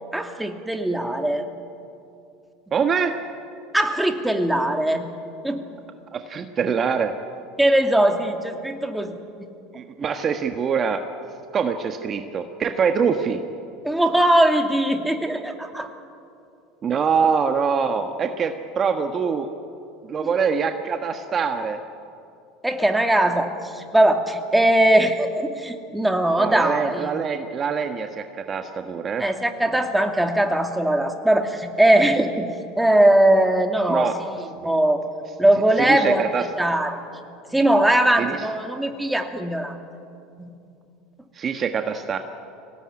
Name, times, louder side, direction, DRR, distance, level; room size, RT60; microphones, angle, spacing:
voice 1, 0.1-1.5 3.7-5.0 5.4-5.6 7.6-9.2 13.8-15.9 22.6-27.1 29.2-32.5 32.8-34.1 34.6-35.0 35.4-36.2 36.6-37.0 37.5-39.8 40.4-40.5, right 1 dB, 5° right, 4 dB, 2.6 m, -20 dB
voice 2, 2.7-3.1 6.1-7.1 9.7-11.0 11.5-13.4 16.8-19.5 20.0-21.8 26.4-29.2 33.9-34.2 35.8-36.5 38.2-38.4 41.3-42.2, right 6 dB, 35° right, 6 dB, 1.5 m, -24 dB
24.5 x 18.5 x 9.8 m, 2.6 s
hypercardioid pair, 90°, 0 cm